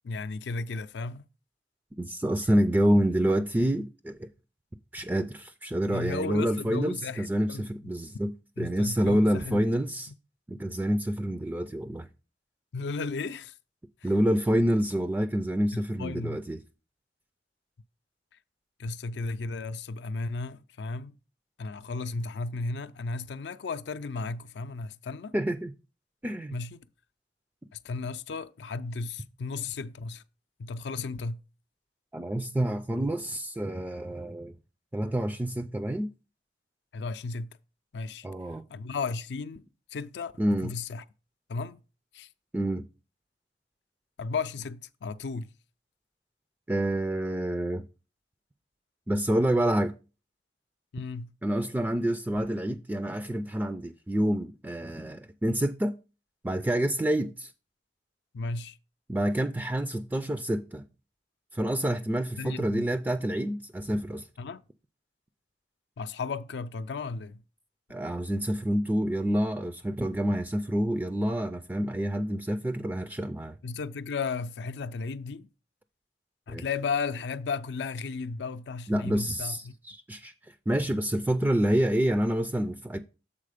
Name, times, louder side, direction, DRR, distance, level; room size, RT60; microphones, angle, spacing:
voice 1, 0.0-1.2 5.9-7.7 8.6-9.6 10.1-10.2 12.7-13.5 14.0-14.1 15.7-16.4 18.8-21.2 21.6-25.3 26.5-26.9 27.7-30.2 30.6-31.4 36.9-37.6 37.9-38.3 38.7-39.6 39.9-41.0 41.5-41.8 42.1-42.3 44.2-45.5 50.9-51.3 58.3-58.8 62.4-62.8 64.4-64.6 66.0-67.4 73.6-75.5 76.5-79.7, left 4 dB, 70° left, 0.4 m, -34 dB
voice 2, 2.0-4.3 4.9-10.1 10.5-12.1 14.0-16.6 25.3-25.7 26.2-26.6 32.1-34.5 34.9-36.1 38.2-38.6 40.4-40.7 42.5-42.9 46.7-47.8 49.1-49.9 51.4-56.0 56.4-57.5 59.1-60.9 61.5-64.3 67.9-73.6 76.5-76.6 78.9-83.0, right 1 dB, 10° right, 0.3 m, -28 dB
7.5 x 4.1 x 5.0 m
head